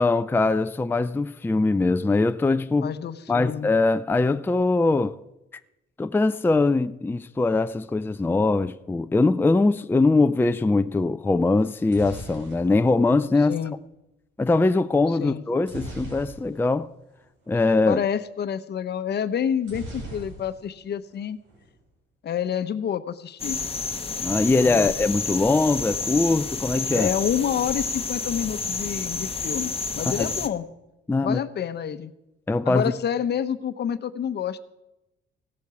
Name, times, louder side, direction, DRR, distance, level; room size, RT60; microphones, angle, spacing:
voice 1, 0.0-2.9 3.3-5.2 6.0-13.6 14.4-16.9 17.5-18.0 24.2-27.1 30.0-30.3 31.1-31.4 32.5-32.8, left 3 dB, 10° left, 0.4 m, -22 dB
voice 2, 2.8-3.7 13.5-13.7 15.2-15.4 17.9-21.4 22.2-23.6 24.6-24.9 26.9-30.7 31.2-32.1 32.6-34.6, left 8 dB, 55° left, 0.9 m, -28 dB
sound 1, 11.6-13.7 15.6-16.8 17.1-17.2 17.5-17.7 19.6-20.8 21.1-21.7, right 2 dB, 75° right, 5.5 m, -40 dB
sound 2, 23.4-30.5, left 4 dB, 30° left, 1.1 m, -30 dB
16.5 x 8.2 x 7.0 m
cardioid pair, 90°, 20 cm